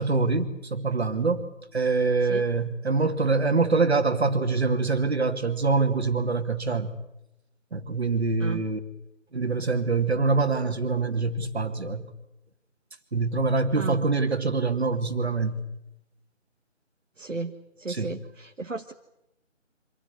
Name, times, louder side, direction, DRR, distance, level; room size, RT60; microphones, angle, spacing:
voice 1, 0.0-1.5 1.7-7.0 7.7-8.8 9.3-12.1 13.1-15.7 18.0-18.1, right 3 dB, 55° right, 7 dB, 2.7 m, -25 dB
voice 2, 17.2-18.9, right 3 dB, 75° right, 4 dB, 1.6 m, -34 dB
26.0 x 16.5 x 9.6 m, 0.87 s
figure-of-eight pair, 160°, 38 cm